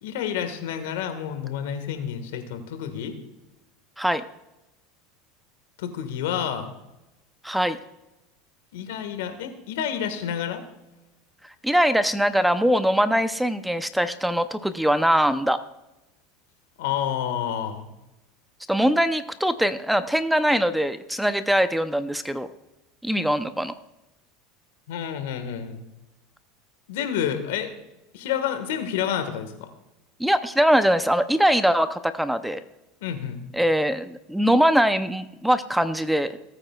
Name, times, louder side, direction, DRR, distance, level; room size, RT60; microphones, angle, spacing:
voice 1, 0.0-3.2 5.8-6.7 8.7-10.6 16.8-17.9 24.9-25.8 26.9-27.7 28.1-29.7 33.0-33.4, left 9 dB, 80° left, 8 dB, 1.6 m, -29 dB
voice 2, 7.4-7.8 11.6-15.6 18.7-22.5 23.0-23.7 30.2-32.6 33.5-36.4, equal, 5° right, 11 dB, 0.6 m, -22 dB
18.5 x 8.9 x 2.4 m, 0.97 s
supercardioid pair, 115°, 0 cm